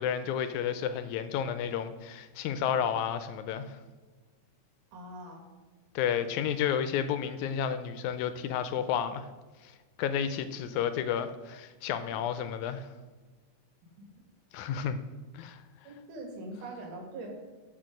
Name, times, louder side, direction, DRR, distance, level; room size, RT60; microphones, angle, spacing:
voice 1, 0.0-3.8 6.0-9.3 9.6-9.7 10.0-12.9 14.5-15.0 15.3-15.6, left 8 dB, 80° left, 11 dB, 1.9 m, -31 dB
voice 2, 4.9-5.4 14.0-14.1 15.8-17.3, right 2 dB, 85° right, 2 dB, 3.2 m, -42 dB
12.0 x 4.2 x 5.0 m, 1.3 s
omnidirectional pair, 3.5 m